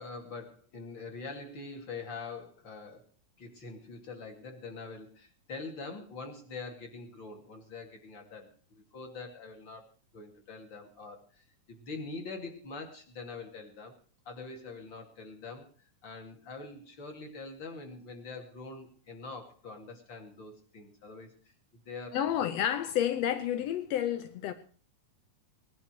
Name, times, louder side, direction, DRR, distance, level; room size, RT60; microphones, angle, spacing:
voice 1, 0.0-3.1 3.4-14.0 14.2-15.7 16.0-21.3 21.7-22.5, left 3 dB, 35° left, 3.0 m, -44 dB
voice 2, 22.1-24.5, left 10 dB, 75° left, 1.5 m, -30 dB
20.0 x 11.5 x 4.5 m
omnidirectional pair, 3.9 m